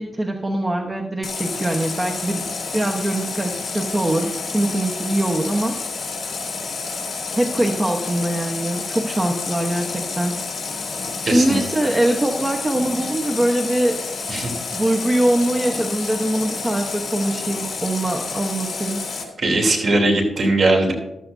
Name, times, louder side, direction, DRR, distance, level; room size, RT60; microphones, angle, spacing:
voice 1, 0.0-2.4 2.7-5.8 7.3-10.4 11.2-14.0 14.7-19.1, right 1 dB, 20° right, 2 dB, 1.0 m, -22 dB
Water tap faucet, 1.2-19.2, left 4 dB, 55° left, 3.5 m, -29 dB
voice 2, 11.2-11.6 14.3-14.5 19.4-20.9, right 2 dB, 50° right, 1 dB, 3.2 m, -19 dB
14.5 x 13.0 x 2.7 m, 0.92 s
wide cardioid pair, 105°, 0 cm